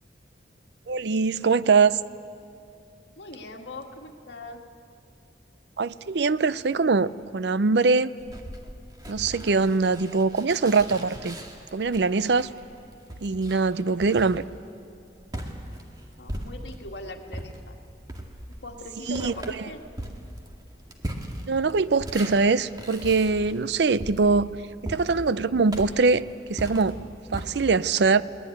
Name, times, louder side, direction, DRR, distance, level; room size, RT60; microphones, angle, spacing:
voice 1, 0.9-2.0 5.8-8.1 9.1-11.4 11.7-12.5 13.2-14.4 19.1-19.3 21.5-24.5 24.8-26.2 26.5-27.0 27.3-28.2, right 4 dB, 70° right, 16 dB, 0.5 m, -22 dB
voice 2, 3.2-4.6 16.2-17.8 18.6-19.8, left 2 dB, 75° left, 3 dB, 2.0 m, -40 dB
sound 1, 8.2-16.9 17.3-27.5, right 1 dB, 20° right, 2.0 m, -39 dB
22.0 x 19.0 x 9.4 m, 2.5 s
head